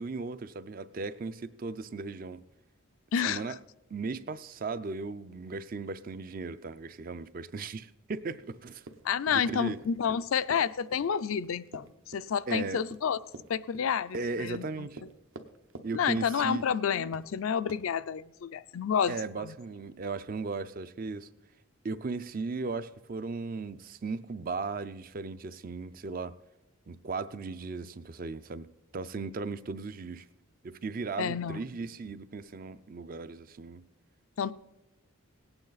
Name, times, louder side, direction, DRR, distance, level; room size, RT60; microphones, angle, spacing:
voice 1, 0.0-2.4 3.2-3.6 3.9-8.9 9.3-9.8 12.5-12.8 14.1-15.0 15.8-16.6 19.1-21.3 21.8-26.4 26.9-28.7 28.9-30.3 30.6-33.8, right 4 dB, 40° right, 0.4 m, -37 dB
voice 2, 3.1-3.4 9.0-13.2 13.5-14.9 15.9-19.5 31.2-31.6 34.4-34.5, left 7 dB, 75° left, 0.4 m, -30 dB
Run, 8.8-15.9 16.2-16.8 17.1-17.4 17.7-17.8, right 2 dB, 70° right, 0.9 m, -47 dB
18.0 x 8.9 x 4.0 m
head